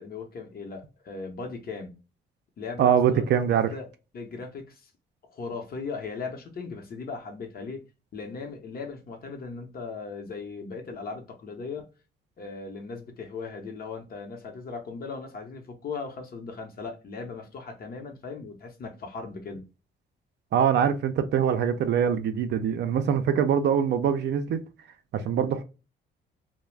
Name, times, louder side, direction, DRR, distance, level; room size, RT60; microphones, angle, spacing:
voice 1, 0.0-1.9 2.6-3.9 4.1-4.9 5.3-7.8 8.1-11.9 12.4-19.7, left 4 dB, 50° left, 0.8 m, -38 dB
voice 2, 2.8-3.7 20.5-24.6 25.1-25.6, right 8 dB, 65° right, 0.4 m, -23 dB
2.3 x 2.0 x 3.2 m
cardioid pair, 85°, 20 cm